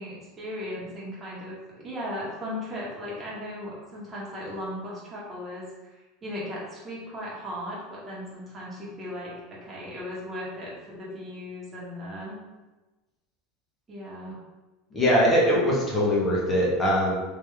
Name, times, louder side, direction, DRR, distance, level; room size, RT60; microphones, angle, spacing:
voice 1, 0.0-5.9 6.2-12.4 13.9-14.4, left 1 dB, 20° right, -6 dB, 1.5 m, -37 dB
voice 2, 14.9-17.1, equal, 20° left, -5 dB, 1.1 m, -22 dB
3.3 x 2.9 x 3.5 m, 1.1 s
supercardioid pair, 125°, 0 cm